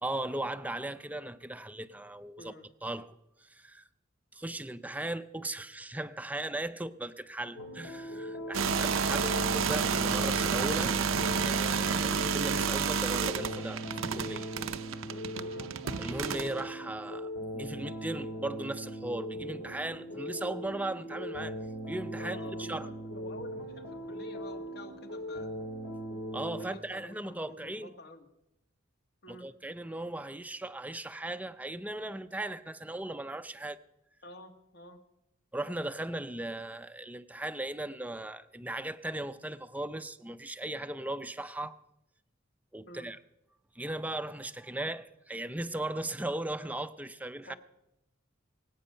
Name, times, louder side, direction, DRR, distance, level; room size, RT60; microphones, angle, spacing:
voice 1, 0.0-2.5 2.8-3.8 4.3-11.0 11.4-13.9 14.1-14.5 16.0-21.5 21.9-22.9 26.3-27.9 29.3-33.8 35.5-41.8 42.7-43.2 43.8-47.5, right 1 dB, 10° right, 0.5 m, -37 dB
sound 1, 7.6-26.7, equal, 75° left, 3.0 m, -40 dB
sound 2, 8.5-16.6, right 6 dB, 75° right, 0.6 m, -30 dB
voice 2, 15.3-15.7 22.2-25.5 26.5-28.3 29.2-29.5 34.2-35.0 42.9-43.2 47.5-47.6, left 1 dB, 55° left, 1.5 m, -49 dB
23.5 x 8.4 x 5.6 m
head